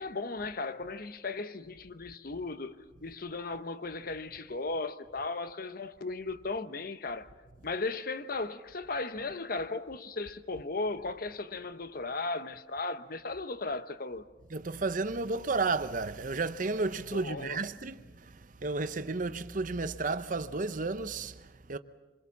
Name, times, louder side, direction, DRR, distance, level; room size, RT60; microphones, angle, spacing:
voice 1, 0.0-2.7 3.0-7.3 7.6-14.2 17.1-17.6, left 3 dB, 50° left, 0.9 m, -36 dB
voice 2, 14.5-21.8, right 3 dB, 45° right, 0.8 m, -33 dB
27.0 x 22.0 x 7.2 m
head